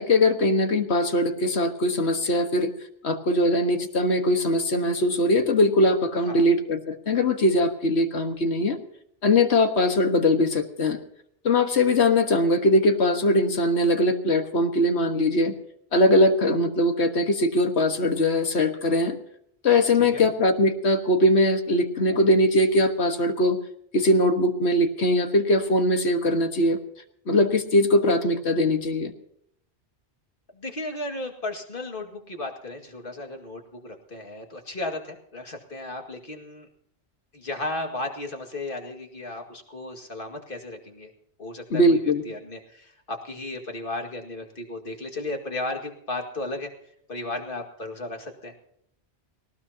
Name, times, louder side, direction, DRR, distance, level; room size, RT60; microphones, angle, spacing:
voice 1, 0.0-2.7 3.0-8.8 9.2-11.0 11.5-15.5 15.9-19.2 19.6-23.6 23.9-26.8 27.3-29.1 41.7-42.2, left 1 dB, 80° left, 6 dB, 1.7 m, -21 dB
voice 2, 30.5-36.7 37.3-41.1 41.4-46.7 47.1-48.5, left 2 dB, 55° left, 3 dB, 2.3 m, -35 dB
19.0 x 18.5 x 2.8 m, 0.68 s
omnidirectional pair, 1.1 m